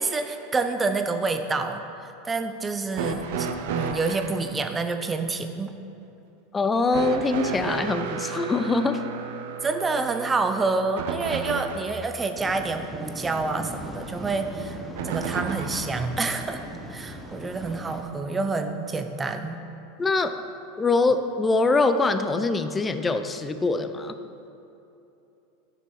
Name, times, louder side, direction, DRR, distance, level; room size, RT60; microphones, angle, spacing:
voice 1, 0.0-1.8 2.2-3.5 3.7-5.7 9.6-14.8 15.0-16.6 16.9-19.6, right 3 dB, 20° right, 7 dB, 0.7 m, -28 dB
sound 1, 2.9-4.4 6.9-12.0 15.0-16.0 17.2-17.3 18.4-18.5, right 6 dB, 70° right, 0.7 m, -32 dB
voice 2, 6.5-9.0 20.0-20.3 20.8-24.1, left 3 dB, 20° left, 9 dB, 0.5 m, -23 dB
Waves surf, 12.4-18.0, right 1 dB, 5° right, 1.0 m, -39 dB
9.9 x 6.0 x 4.6 m, 2.9 s
hypercardioid pair, 105°, 0 cm